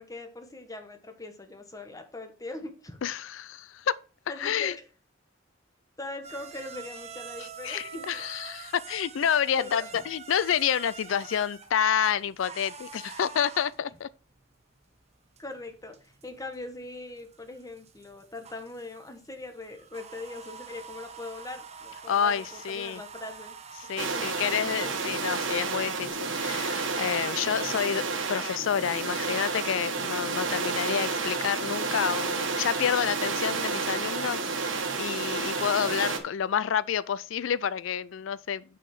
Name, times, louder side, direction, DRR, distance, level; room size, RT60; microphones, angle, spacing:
voice 1, 0.0-3.1 4.3-4.8 6.0-8.3 9.6-10.0 15.4-23.5 24.0-24.9, left 2 dB, 20° left, 1.1 m, -41 dB
voice 2, 3.0-4.0 4.4-4.8 7.6-14.1 22.1-23.0 23.8-38.6, left 8 dB, 75° left, 0.4 m, -29 dB
sound 1, 6.2-26.1, right 6 dB, 35° right, 0.9 m, -46 dB
sound 2, 24.0-36.2, right 4 dB, 70° right, 1.4 m, -31 dB
6.0 x 5.7 x 5.8 m
head